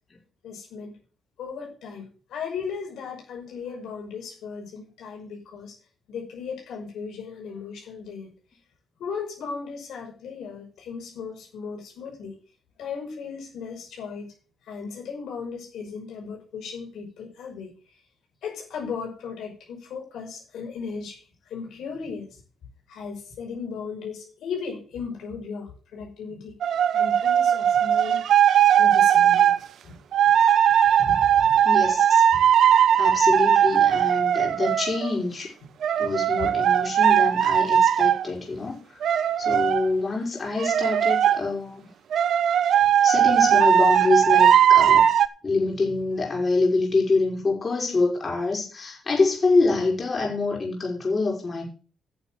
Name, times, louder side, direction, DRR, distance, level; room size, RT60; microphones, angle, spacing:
voice 1, 0.4-0.9 1.4-5.8 6.1-8.3 9.0-12.4 12.8-14.3 14.7-17.7 18.4-21.2 21.5-22.4 22.9-26.6 26.9-28.3 28.8-29.5 29.8-30.0 31.0-31.6 32.3-32.4 36.4-36.5, left 5 dB, 75° left, 0 dB, 5.9 m, -36 dB
sound 1, 26.6-29.6 30.1-35.1 35.8-38.3 39.0-39.9 40.6-41.4 42.1-45.3, right 9 dB, 65° right, 0.8 m, -19 dB
voice 2, 31.6-32.2 33.0-35.5 36.0-39.0 39.4-41.8 43.0-45.1 45.4-51.6, left 3 dB, 35° left, -1 dB, 5.9 m, -25 dB
10.0 x 7.2 x 7.6 m, 0.37 s
cardioid pair, 90°, 0 cm